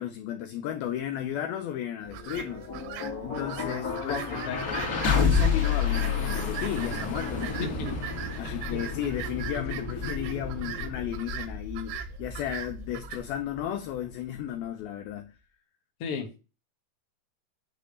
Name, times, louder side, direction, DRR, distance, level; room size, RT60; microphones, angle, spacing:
voice 1, 0.0-2.7 3.2-4.2 5.0-7.7 8.4-15.4, left 10 dB, 90° left, 2.1 m, -34 dB
sound 1, 2.1-14.1, left 5 dB, 40° left, 1.3 m, -30 dB
sound 2, 2.1-13.2, right 10 dB, 85° right, 3.1 m, -41 dB
voice 2, 4.1-4.8 7.6-7.9 8.3-8.8 16.0-16.4, left 5 dB, 70° left, 1.4 m, -35 dB
8.9 x 3.5 x 6.8 m
omnidirectional pair, 5.1 m